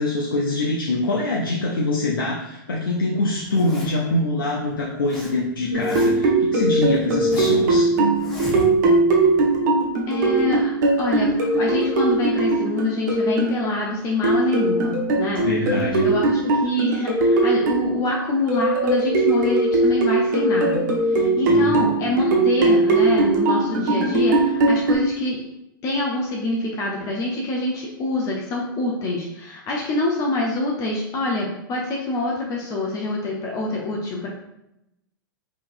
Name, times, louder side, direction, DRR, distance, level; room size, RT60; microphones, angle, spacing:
voice 1, 0.0-7.9 15.4-16.1 21.5-21.8, left 2 dB, 75° left, -3 dB, 0.5 m, -24 dB
Zipper (clothing), 3.4-4.1 4.7-5.3 5.6-6.3 6.8-7.7 8.2-9.0, left 1 dB, 5° left, 0.8 m, -36 dB
sound 1, 5.7-13.5 14.2-17.9 18.5-25.0, right 2 dB, 60° right, 0.9 m, -20 dB
voice 2, 10.1-15.4 16.0-25.4 25.8-34.3, left 2 dB, 30° left, -2 dB, 0.6 m, -25 dB
3.6 x 2.9 x 2.5 m, 0.87 s
figure-of-eight pair, 105°, 11 cm